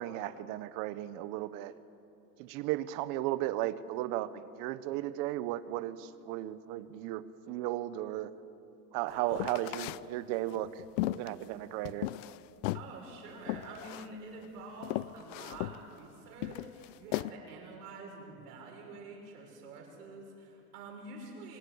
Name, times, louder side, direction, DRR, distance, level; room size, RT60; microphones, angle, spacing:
voice 1, 0.0-1.7 2.4-7.2 7.5-8.3 8.9-10.8 11.1-12.1, right 14 dB, 45° right, 15 dB, 0.9 m, -35 dB
sound 1, 9.3-10.0 10.5-12.4 12.6-12.9 13.5-14.1 14.4-14.5 14.8-15.8 16.4-17.3, left 18 dB, 55° left, 0.6 m, -36 dB
voice 2, 12.7-21.6, right 3 dB, 80° right, 1 dB, 6.7 m, -47 dB
25.0 x 18.0 x 7.9 m, 2.8 s
supercardioid pair, 145°, 46 cm